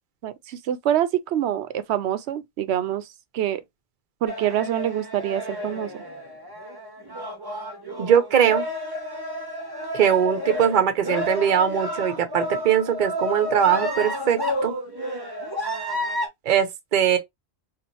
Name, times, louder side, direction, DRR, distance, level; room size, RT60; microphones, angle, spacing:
voice 1, 0.2-3.1 3.3-3.6 4.2-6.0, right 11 dB, 85° right, 0.9 m, -25 dB
sound 1, 4.3-16.3, left 1 dB, 25° right, 0.9 m, -31 dB
voice 2, 8.0-8.6 9.9-14.7 16.5-17.2, right 9 dB, 50° right, 0.8 m, -21 dB
4.1 x 2.4 x 3.0 m
omnidirectional pair, 1.1 m